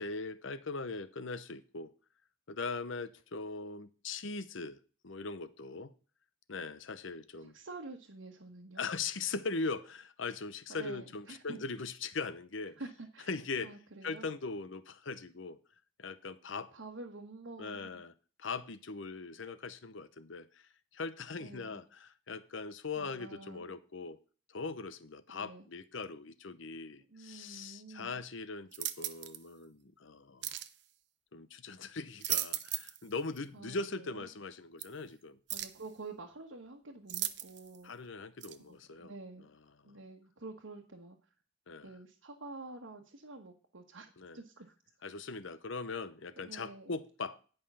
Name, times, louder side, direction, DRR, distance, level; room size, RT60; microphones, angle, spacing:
voice 1, 0.0-1.9 2.5-4.8 5.0-5.9 6.5-7.5 8.8-12.8 13.3-13.7 14.0-15.6 16.0-16.7 17.6-18.1 18.4-20.6 20.9-24.2 24.5-30.5 31.3-35.4 37.8-39.1 39.8-40.0 41.7-41.9 44.2-44.4 45.0-47.4, left 4 dB, 70° left, 0.8 m, -40 dB
voice 2, 7.4-8.8 10.7-11.6 12.8-13.3 13.6-14.3 16.7-18.0 21.4-21.8 23.0-23.7 25.3-25.7 27.1-28.2 33.5-34.3 35.5-37.9 38.6-39.5 39.8-41.2 41.8-44.7 46.4-46.9, right 3 dB, 75° right, 1.3 m, -48 dB
sound 1, 28.7-29.4 30.4-30.7 32.0-33.0 33.4-33.5 34.8-34.9 35.5-35.8 37.1-37.8 38.4-38.6, right 13 dB, 55° right, 0.7 m, -37 dB
10.5 x 5.5 x 5.6 m
head